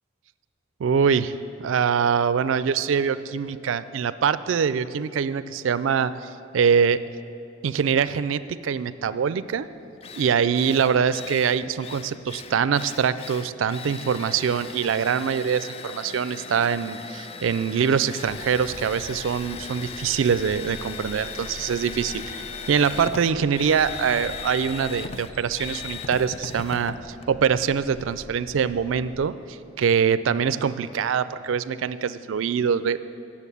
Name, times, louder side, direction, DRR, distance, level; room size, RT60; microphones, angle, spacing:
voice 1, 0.8-7.0 7.6-9.7 10.1-33.0, right 7 dB, 80° right, 14 dB, 0.4 m, -24 dB
Drill, 9.6-9.7 10.0-28.1, left 5 dB, 30° left, 0.3 m, -38 dB
sound 1, 18.3-29.3, equal, 5° left, 0.8 m, -45 dB
9.2 x 7.2 x 8.3 m, 3.0 s
head